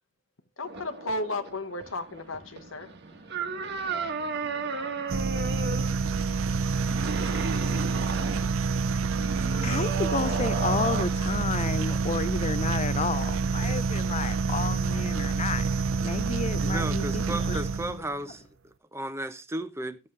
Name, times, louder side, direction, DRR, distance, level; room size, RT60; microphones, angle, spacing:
voice 1, 0.6-2.9, left 2 dB, 85° left, 1.2 m, -34 dB
sound 1, 0.6-11.1, right 4 dB, 60° right, 1.3 m, -35 dB
sound 2, 5.1-18.1, right 4 dB, 80° right, 0.5 m, -27 dB
voice 2, 9.6-15.7 16.0-17.6, left 4 dB, 35° left, 0.5 m, -31 dB
voice 3, 16.7-20.0, right 1 dB, 15° right, 0.8 m, -34 dB
14.0 x 7.4 x 3.2 m
head